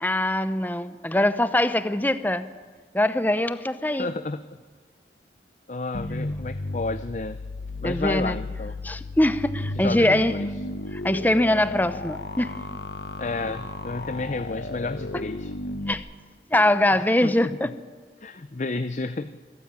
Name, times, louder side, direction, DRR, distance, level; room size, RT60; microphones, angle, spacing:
voice 1, 0.0-2.5 2.9-4.1 7.8-8.4 8.8-10.3 10.9-12.6 15.9-16.0 16.5-17.7, left 1 dB, 10° left, 12 dB, 0.8 m, -23 dB
voice 2, 4.0-4.4 5.7-7.4 7.8-8.7 9.8-10.5 13.2-15.5 17.0-17.6 18.2-19.3, left 3 dB, 40° left, 11 dB, 0.6 m, -31 dB
sound 1, 5.9-15.9, left 2 dB, 70° left, 1.2 m, -34 dB
26.0 x 15.0 x 9.0 m, 1.5 s
head